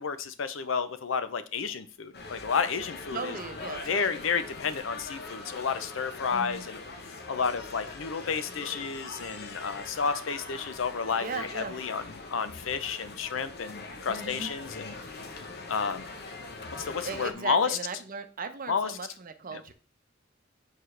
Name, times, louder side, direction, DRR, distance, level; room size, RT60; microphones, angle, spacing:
voice 1, 0.0-3.3 3.8-6.8 7.3-14.9 15.7-16.0 16.8-17.8 18.7-18.9 19.5-19.6, left 6 dB, 85° left, 12 dB, 0.6 m, -31 dB
sound 1, 2.1-17.3, left 3 dB, 55° left, 0.9 m, -42 dB
voice 2, 3.1-4.2 6.3-6.6 11.1-11.8 14.1-14.5 17.0-19.7, right 5 dB, 45° right, 9 dB, 0.7 m, -38 dB
6.9 x 4.6 x 3.2 m, 0.38 s
head